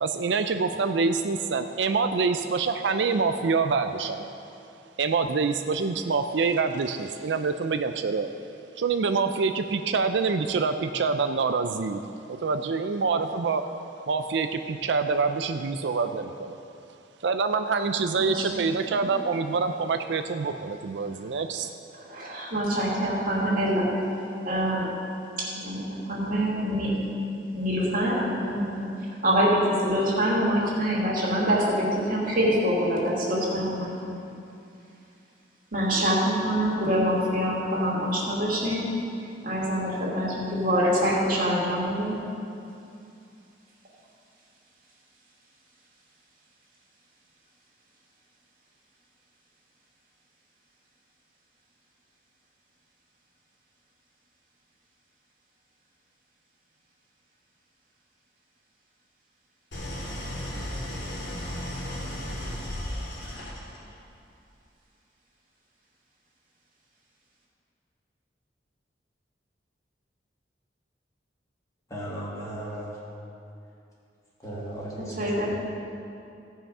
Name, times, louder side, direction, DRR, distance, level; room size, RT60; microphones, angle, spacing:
voice 1, 0.0-4.3 5.0-8.3 8.8-12.0 12.3-13.6 14.1-16.6 17.2-21.7, right 4 dB, 80° right, 8 dB, 0.4 m, -26 dB
voice 2, 18.2-18.6 22.0-23.9 24.5-24.8 25.4-27.0 27.5-28.9 29.2-34.2 35.7-38.8 39.4-42.2 75.0-75.5, equal, 50° right, -5 dB, 2.6 m, -25 dB
Idling, 59.7-63.9, left 1 dB, 90° left, 3.0 m, -34 dB
voice 3, 71.9-72.9 74.4-75.4, right 1 dB, 20° left, -6 dB, 2.4 m, -36 dB
16.5 x 5.7 x 5.5 m, 2.6 s
head